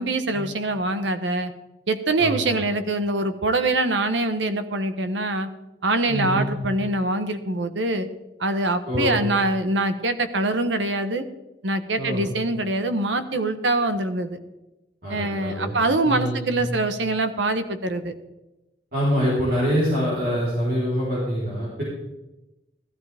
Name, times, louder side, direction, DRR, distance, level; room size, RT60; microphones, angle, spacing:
voice 1, 0.0-1.5 1.9-5.5 5.8-8.1 8.4-11.3 11.6-14.4 15.1-18.1, right 2 dB, 85° right, 10 dB, 1.0 m, -24 dB
voice 2, 2.2-2.6 6.1-6.5 8.9-9.2 12.0-12.3 15.0-15.8 16.0-16.6 18.9-21.8, equal, 55° right, -7 dB, 3.9 m, -25 dB
14.0 x 13.5 x 3.5 m, 0.99 s
head